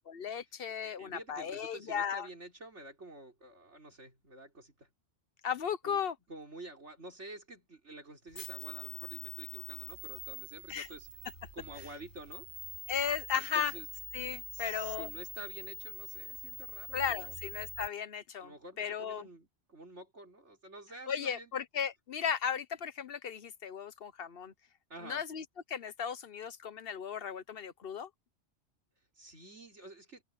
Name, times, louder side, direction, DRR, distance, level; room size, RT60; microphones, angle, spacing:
voice 1, 0.0-2.3 5.4-6.1 10.7-10.9 12.9-13.7 14.1-15.1 16.9-19.3 21.1-24.5 25.0-28.1, left 7 dB, 60° left, 1.1 m, -36 dB
voice 2, 0.8-4.9 5.8-6.0 6.3-11.1 11.5-12.5 13.4-13.9 14.5-17.3 18.4-21.6 24.9-25.2 29.1-30.2, right 2 dB, 85° right, 5.0 m, -49 dB
sound 1, 8.3-17.9, equal, 80° left, 4.5 m, -45 dB
omnidirectional pair, 1.2 m